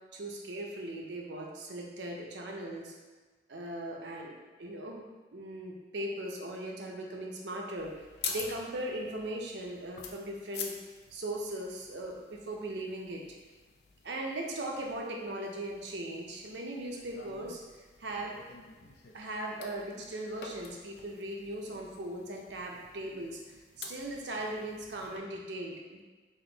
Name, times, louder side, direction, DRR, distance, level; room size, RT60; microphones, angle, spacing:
voice 1, 0.1-2.9 3.5-5.0 5.3-8.0 8.3-10.7 11.1-13.2 14.0-17.6 18.0-18.4 19.1-26.0, right 1 dB, 70° right, 0 dB, 0.6 m, -39 dB
sound 1, 7.8-25.2, left 5 dB, 60° left, 0.4 m, -47 dB
3.5 x 2.5 x 3.8 m, 1.3 s
head